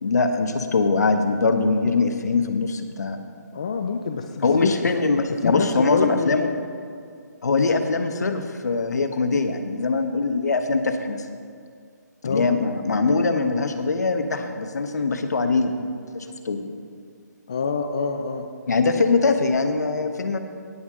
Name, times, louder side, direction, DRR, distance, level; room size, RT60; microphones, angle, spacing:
voice 1, 0.0-3.2 4.4-6.5 7.4-11.2 12.2-16.7 18.7-20.4, left 3 dB, 65° left, 7 dB, 1.1 m, -22 dB
voice 2, 3.5-4.7 5.4-6.6 12.2-12.5 17.5-18.4, left 5 dB, 20° left, 5 dB, 0.3 m, -26 dB
17.0 x 8.2 x 3.7 m, 2.3 s
hypercardioid pair, 175°, 10 cm